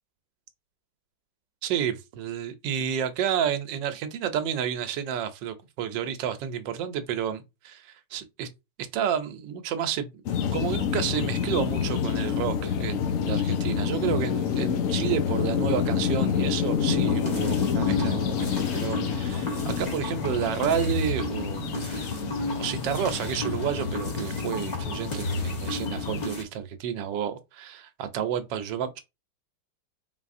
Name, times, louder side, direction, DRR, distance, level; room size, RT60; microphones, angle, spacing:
voice 1, 1.6-8.5 8.9-10.1 10.5-22.1 22.5-29.0, right 9 dB, 75° right, 1.3 m, -30 dB
sound 1, 10.3-26.3, left 8 dB, 90° left, 0.7 m, -28 dB
sound 2, 16.9-26.4, left 1 dB, 35° left, 0.7 m, -34 dB
4.1 x 3.8 x 2.5 m
omnidirectional pair, 2.1 m